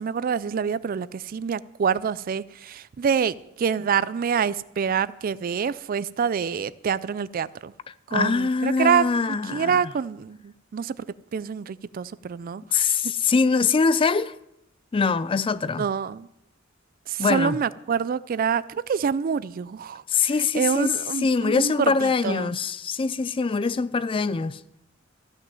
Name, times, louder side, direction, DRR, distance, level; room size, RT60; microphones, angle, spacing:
voice 1, 0.0-7.7 8.1-11.1 11.3-12.9 15.8-16.3 17.1-20.0 20.5-22.5, right 7 dB, 45° right, 0.3 m, -26 dB
voice 2, 7.9-9.8 12.7-14.3 14.9-15.8 17.2-17.6 20.1-24.6, left 4 dB, 25° left, 0.4 m, -23 dB
14.5 x 6.2 x 7.6 m
head